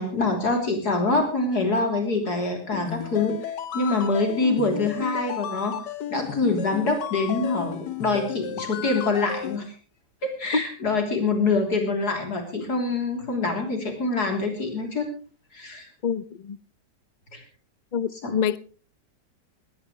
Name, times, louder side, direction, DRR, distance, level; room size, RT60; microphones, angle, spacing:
voice 1, 0.0-5.7 6.1-9.7 10.2-15.1 15.5-15.9 17.3-17.4 18.2-18.4, left 3 dB, 70° left, 3.9 m, -25 dB
sound 1, 2.7-9.6, left 9 dB, 90° left, 1.7 m, -34 dB
voice 2, 16.0-16.6 17.9-18.6, left 6 dB, 50° left, 0.5 m, -26 dB
20.0 x 16.5 x 3.2 m
omnidirectional pair, 1.8 m